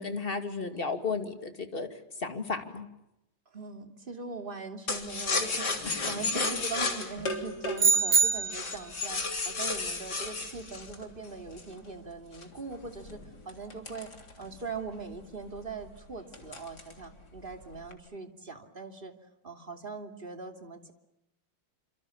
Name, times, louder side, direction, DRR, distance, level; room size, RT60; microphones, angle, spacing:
voice 1, 0.0-2.9 5.9-6.0 6.3-6.5, left 4 dB, 25° left, 6 dB, 2.6 m, -34 dB
voice 2, 3.5-5.7 6.0-14.1 14.4-19.1 19.4-20.9, right 4 dB, 25° right, 5 dB, 2.8 m, -41 dB
sound 1, 4.9-11.8 12.3-14.8 15.2-15.3 15.6-15.9 16.3-17.0 17.4-17.9, left 3 dB, 50° left, 3.9 m, -33 dB
sound 2, 7.8-8.9, right 5 dB, 40° right, 1.2 m, -24 dB
28.5 x 27.0 x 7.1 m, 0.88 s
omnidirectional pair, 2.2 m